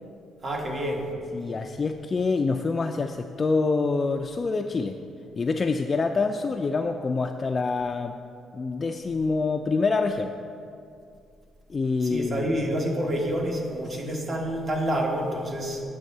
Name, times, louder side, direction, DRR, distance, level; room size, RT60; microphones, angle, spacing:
voice 1, 0.4-1.1 12.0-15.8, equal, 45° right, 0 dB, 1.3 m, -28 dB
voice 2, 1.3-5.0 5.4-8.2 8.5-10.3 11.7-12.5 13.9-14.0, left 4 dB, 35° left, 4 dB, 0.3 m, -26 dB
8.9 x 3.4 x 6.6 m, 2.5 s
cardioid pair, 90°, 0 cm